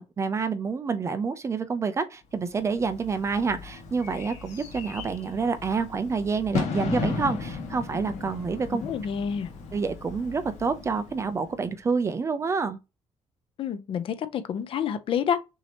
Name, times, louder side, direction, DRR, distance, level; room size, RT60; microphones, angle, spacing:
voice 1, 0.0-8.8 9.7-12.8, right 5 dB, 25° right, 0.4 m, -28 dB
Bird / Fireworks, 2.5-11.7, left 4 dB, 70° left, 1.5 m, -36 dB
voice 2, 8.7-9.5 13.6-15.4, left 8 dB, 45° left, 0.6 m, -28 dB
6.3 x 2.8 x 2.9 m
cardioid pair, 175°, 12 cm